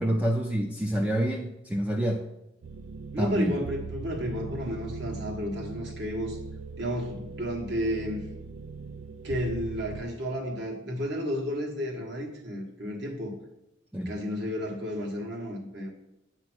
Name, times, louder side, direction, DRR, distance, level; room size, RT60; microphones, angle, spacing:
voice 1, 0.0-2.2 3.2-3.5 13.9-14.1, right 1 dB, 5° right, 1 dB, 0.3 m, -27 dB
sound 1, 2.6-10.0, right 5 dB, 85° right, 0.4 m, -40 dB
voice 2, 3.1-6.4 6.8-8.2 9.2-13.3 14.0-15.9, equal, 55° right, -1 dB, 1.3 m, -32 dB
8.6 x 2.9 x 6.1 m, 0.85 s
head